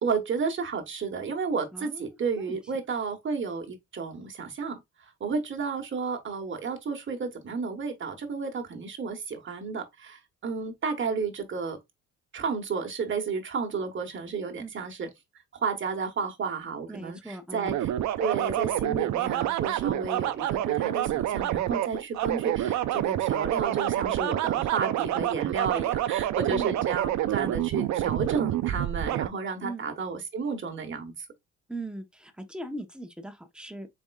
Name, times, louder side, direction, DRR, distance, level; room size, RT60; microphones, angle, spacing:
voice 1, 0.0-4.8 5.2-11.8 12.3-15.1 15.6-17.9 18.2-31.3, right 5 dB, 40° right, 1.1 m, -32 dB
voice 2, 1.7-2.0 2.5-2.6 14.6-14.7 16.9-17.8 26.5-26.7 29.6-29.8 31.7-33.9, right 1 dB, 5° right, 0.8 m, -39 dB
sound 1, 17.7-29.3, right 13 dB, 70° right, 0.5 m, -28 dB
4.3 x 3.5 x 2.3 m
cardioid pair, 90°, 30 cm